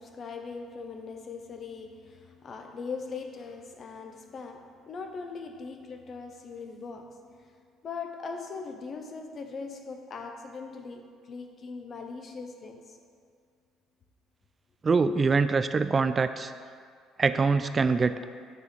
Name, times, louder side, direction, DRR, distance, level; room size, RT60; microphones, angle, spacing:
voice 1, 0.0-7.5 7.8-13.0, left 4 dB, 45° left, 5 dB, 1.0 m, -40 dB
voice 2, 14.8-16.5 17.2-18.2, right 4 dB, 35° right, 11 dB, 0.4 m, -24 dB
9.6 x 4.0 x 6.9 m, 2.1 s
supercardioid pair, 70°, 0 cm